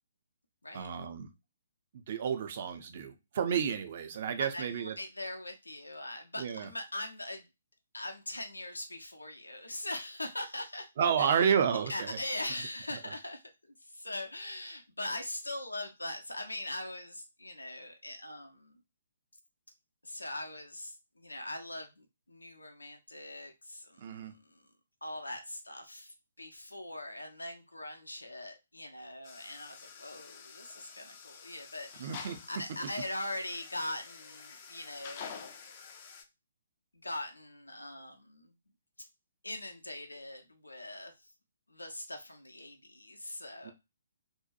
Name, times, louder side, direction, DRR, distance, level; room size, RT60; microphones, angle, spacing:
voice 1, 0.7-1.3 1.9-5.0 6.4-6.7 11.0-12.2 24.0-24.3 32.0-32.4 43.6-43.7, right 7 dB, 40° right, 0.5 m, -31 dB
voice 2, 4.5-7.4 7.9-10.9 11.2-11.5 11.9-13.5 13.8-18.8 20.0-24.7 25.0-35.6 36.9-38.5 39.4-41.3 41.7-43.7, left 1 dB, 80° left, 0.6 m, -41 dB
sound 1, 29.2-36.2, left 6 dB, 30° left, 0.4 m, -48 dB
2.7 x 2.2 x 2.5 m
figure-of-eight pair, 130°, 0 cm